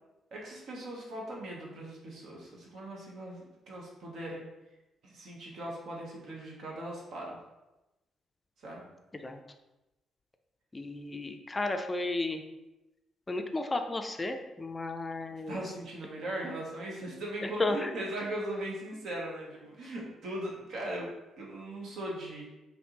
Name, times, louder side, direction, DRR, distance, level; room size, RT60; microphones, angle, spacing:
voice 1, 0.3-4.5 5.0-7.4 8.6-8.9 15.5-22.5, right 1 dB, 55° right, -2 dB, 0.7 m, -39 dB
voice 2, 10.7-12.4 13.3-15.7 17.4-17.9, left 2 dB, 25° left, 6 dB, 0.4 m, -33 dB
3.3 x 2.6 x 2.8 m, 1.0 s
figure-of-eight pair, 40°, 0 cm